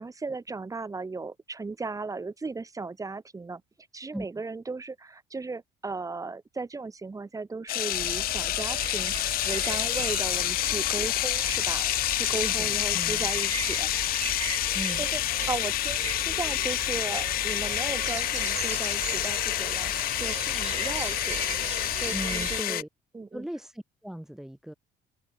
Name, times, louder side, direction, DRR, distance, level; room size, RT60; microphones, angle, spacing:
voice 1, 0.0-3.6 3.9-9.1 9.4-13.9 15.0-21.5 21.9-22.8 23.1-23.5, right 3 dB, 20° right, 2.0 m, -36 dB
sound 1, 7.7-22.8, left 16 dB, 60° left, 0.4 m, -28 dB
sound 2, 7.9-22.6, right 8 dB, 40° right, 1.1 m, -38 dB
voice 2, 12.3-13.3 14.7-15.1 22.1-22.9 23.3-24.7, equal, ahead, 0.6 m, -38 dB
open air
cardioid pair, 110°, 17 cm